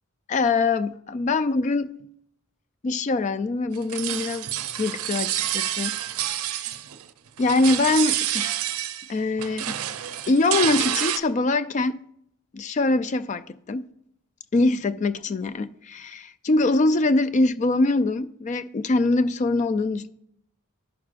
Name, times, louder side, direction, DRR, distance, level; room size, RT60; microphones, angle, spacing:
voice 1, 0.3-1.9 2.8-4.5 4.8-6.0 6.5-6.7 7.4-8.6 9.1-9.8 10.3-12.0 12.5-13.8 14.5-20.1, left 2 dB, 35° left, 0.3 m, -23 dB
sound 1, 3.7-7.1 7.4-9.1 9.4-11.2, right 12 dB, 90° right, 0.5 m, -28 dB
14.0 x 6.1 x 2.4 m
head